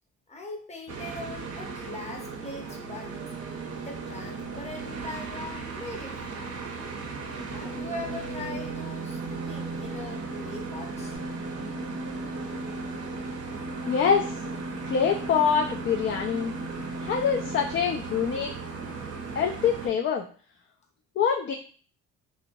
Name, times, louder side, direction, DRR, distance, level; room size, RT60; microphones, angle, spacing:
voice 1, 0.3-3.3 3.8-6.7 7.5-11.2, left 2 dB, 20° left, 1 dB, 0.9 m, -41 dB
sound 1, 0.9-19.9, right 3 dB, 55° right, 0.7 m, -36 dB
sound 2, 5.6-5.7 6.2-10.5 11.1-11.2, left 1 dB, 85° left, 0.7 m, -43 dB
voice 2, 13.9-14.4 14.8-16.5 17.0-18.5 19.4-20.3 21.2-21.5, left 7 dB, 40° left, 2 dB, 0.4 m, -25 dB
2.8 x 2.8 x 2.6 m, 0.43 s
cardioid pair, 90°, 30 cm